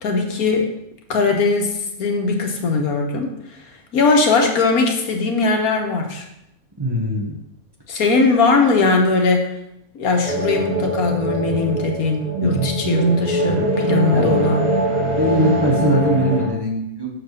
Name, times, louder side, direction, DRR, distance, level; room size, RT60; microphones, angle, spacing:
voice 1, 0.0-0.7 1.1-3.3 3.9-6.2 7.9-9.5 9.9-14.6, left 3 dB, 85° left, 3 dB, 1.6 m, -19 dB
voice 2, 6.8-7.4 14.1-14.3 15.2-17.1, equal, 20° right, -2 dB, 1.0 m, -21 dB
sound 1, 10.2-16.5, right 1 dB, 45° right, 2.3 m, -21 dB
6.5 x 4.7 x 6.5 m, 0.83 s
omnidirectional pair, 1.5 m